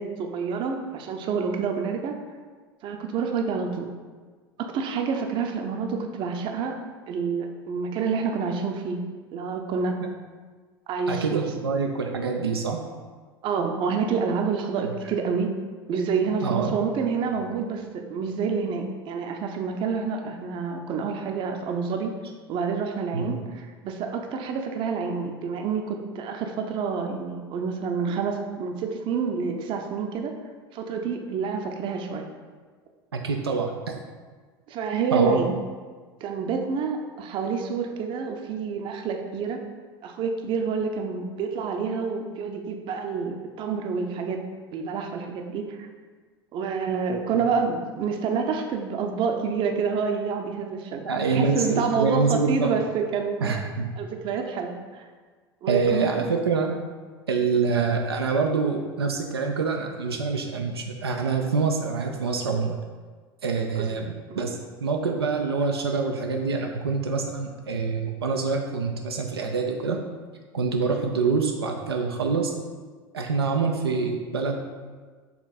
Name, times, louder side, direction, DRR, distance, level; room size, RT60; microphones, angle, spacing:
voice 1, 0.0-2.2 2.8-3.9 4.6-6.8 7.1-9.0 9.3-10.0 10.9-11.3 13.4-15.5 15.9-17.8 18.1-22.1 22.5-30.3 30.7-32.2 34.7-35.6 36.2-39.6 40.0-44.4 44.7-45.9 46.5-53.5 54.0-55.1 55.6-56.1 64.3-64.5, right 5 dB, 40° right, 4 dB, 0.7 m, -28 dB
voice 2, 11.1-12.8 16.4-16.7 23.1-23.4 33.1-33.9 35.1-35.5 47.3-47.5 51.1-52.7 53.4-53.9 55.7-56.8 57.3-62.8 63.4-70.0 70.5-72.5 73.1-74.6, right 4 dB, 75° right, 2 dB, 0.5 m, -25 dB
6.9 x 3.9 x 4.2 m, 1.5 s
figure-of-eight pair, 75°, 13 cm